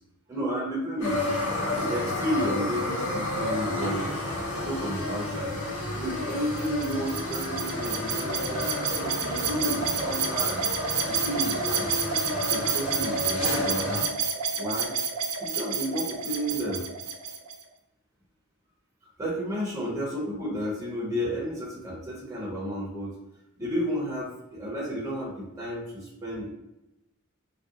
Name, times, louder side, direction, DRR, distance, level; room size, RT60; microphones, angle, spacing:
voice 1, 0.3-1.3 1.8-5.5 5.9-10.6 11.1-11.9 12.5-14.0 14.6-14.9 15.4-16.9 19.2-23.1 23.6-26.5, equal, 15° right, -6 dB, 0.9 m, -32 dB
sound 1, 1.0-14.0, left 2 dB, 75° left, 1.2 m, -31 dB
sound 2, 6.6-17.6, right 6 dB, 80° right, 0.4 m, -30 dB
2.7 x 2.2 x 3.6 m, 0.92 s
head